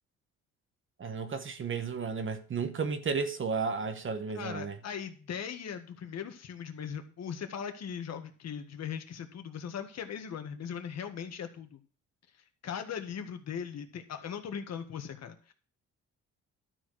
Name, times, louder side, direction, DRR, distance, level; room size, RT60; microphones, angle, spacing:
voice 1, 1.0-4.8, right 5 dB, 40° right, 1.1 m, -33 dB
voice 2, 4.3-11.8 12.6-15.5, left 7 dB, 60° left, 1.7 m, -39 dB
12.0 x 4.8 x 6.3 m
cardioid pair, 90°, 30 cm